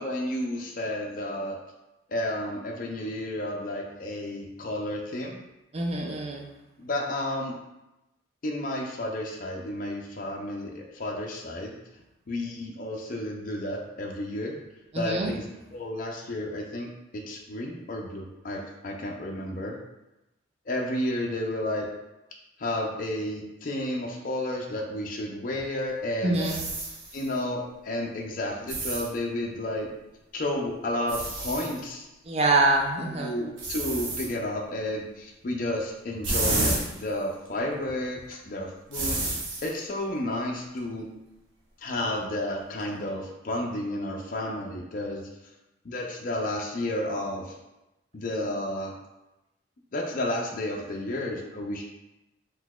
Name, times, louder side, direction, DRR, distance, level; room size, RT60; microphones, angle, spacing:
voice 1, 0.0-1.6 2.1-5.4 6.8-7.5 8.4-11.8 12.3-14.6 15.0-15.5 15.7-19.8 20.7-21.9 22.6-26.6 27.1-29.9 30.3-32.1 33.0-39.2 39.6-41.1 41.8-45.2 45.8-47.5 48.1-48.9 49.9-51.8, left 1 dB, 45° left, 0 dB, 0.4 m, -31 dB
voice 2, 5.7-6.5 14.9-15.3 26.2-26.7 32.3-33.4, right 2 dB, 35° right, 0 dB, 0.4 m, -25 dB
sound 1, 25.6-25.7 26.3-27.3 28.7-29.1 30.7-30.8 31.1-31.8 33.1-33.2 33.6-34.4 36.2-37.1 37.5-37.6 38.9-39.7, right 2 dB, 90° right, 0.7 m, -30 dB
3.9 x 2.7 x 2.3 m, 0.96 s
head